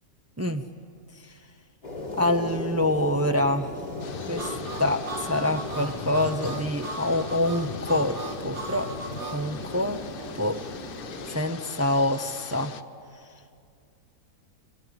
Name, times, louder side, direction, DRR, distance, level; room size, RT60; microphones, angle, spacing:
sound 1, 1.8-11.4, left 2 dB, 75° left, 4.3 m, -37 dB
voice 1, 2.2-3.7 4.3-4.5 4.8-8.2 8.4-8.9 9.3-10.0 10.4-10.6 11.3-12.7, left 1 dB, 20° right, 7 dB, 0.4 m, -26 dB
sound 2, 4.0-12.8, left 7 dB, 50° left, 0.7 m, -41 dB
Harmonica, 4.4-9.4, right 3 dB, 45° right, 2.3 m, -37 dB
25.0 x 19.0 x 9.7 m, 2.4 s
omnidirectional pair, 1.6 m